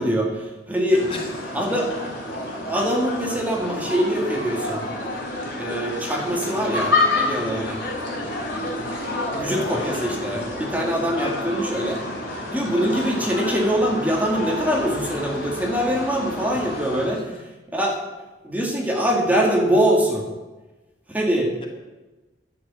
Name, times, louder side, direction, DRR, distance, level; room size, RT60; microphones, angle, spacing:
voice 1, 0.0-1.1 1.5-1.9 2.7-4.9 5.6-7.8 9.3-12.0 12.5-17.2 17.7-18.0 18.4-20.3 21.1-21.5, equal, 10° right, -1 dB, 2.1 m, -23 dB
sound 1, 0.9-17.1, left 2 dB, 50° left, 4.5 m, -29 dB
voice 2, 1.1-1.8 9.3-9.9 11.1-12.0 12.7-13.1 17.1-17.4, left 2 dB, 30° left, 1 dB, 2.1 m, -36 dB
11.5 x 8.4 x 8.3 m, 1.1 s
head